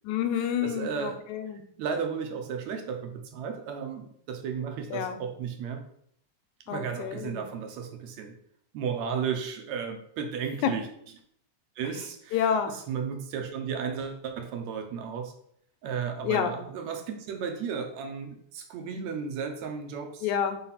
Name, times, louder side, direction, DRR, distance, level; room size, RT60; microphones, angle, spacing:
voice 1, 0.0-1.6 4.9-5.2 6.7-7.4 10.6-10.7 12.3-12.7 16.2-16.5 20.2-20.6, left 8 dB, 85° left, 8 dB, 2.1 m, -28 dB
voice 2, 0.6-1.2 1.8-5.8 6.7-8.3 8.7-10.9 11.8-15.3 15.8-20.3, right 6 dB, 75° right, 5 dB, 2.0 m, -34 dB
5.0 x 4.2 x 5.6 m, 0.67 s
omnidirectional pair, 3.3 m